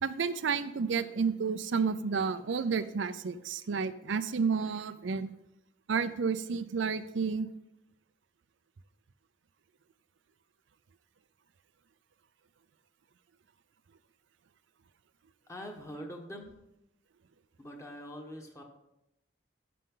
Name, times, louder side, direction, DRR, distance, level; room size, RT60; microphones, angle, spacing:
voice 1, 0.0-5.3 5.9-7.5, right 5 dB, 80° right, 12 dB, 0.5 m, -31 dB
voice 2, 15.5-16.5 17.6-18.6, equal, 15° left, 2 dB, 1.3 m, -43 dB
14.5 x 6.7 x 3.8 m, 0.87 s
head